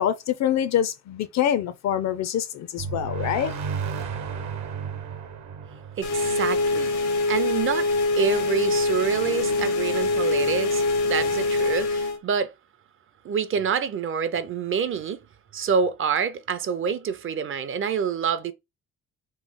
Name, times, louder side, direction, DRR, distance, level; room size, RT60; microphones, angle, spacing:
voice 1, 0.0-3.5, left 10 dB, 65° left, 0.5 m, -25 dB
sound 1, 2.8-7.4, right 5 dB, 65° right, 1.0 m, -33 dB
sound 2, 6.0-12.2, left 2 dB, 90° left, 0.9 m, -24 dB
voice 2, 6.0-7.9 8.2-12.5 13.2-15.2 15.5-18.5, right 6 dB, 45° right, 0.5 m, -27 dB
3.1 x 2.0 x 3.5 m
cardioid pair, 90°, 30 cm